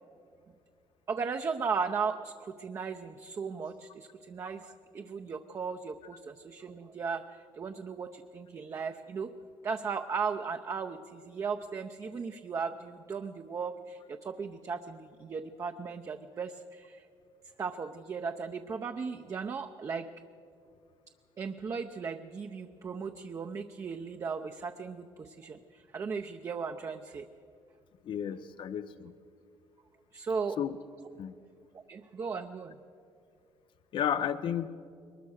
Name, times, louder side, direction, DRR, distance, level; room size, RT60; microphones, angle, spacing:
voice 1, 1.1-9.3 9.6-17.1 17.6-20.1 21.4-27.3 30.1-30.6 31.9-32.8, right 5 dB, 35° right, 5 dB, 0.7 m, -36 dB
voice 2, 28.1-29.1 30.6-30.8 31.2-31.4 33.9-34.7, left 9 dB, 60° left, 12 dB, 0.7 m, -32 dB
22.0 x 20.0 x 6.5 m, 2.4 s
cardioid pair, 135°, 9 cm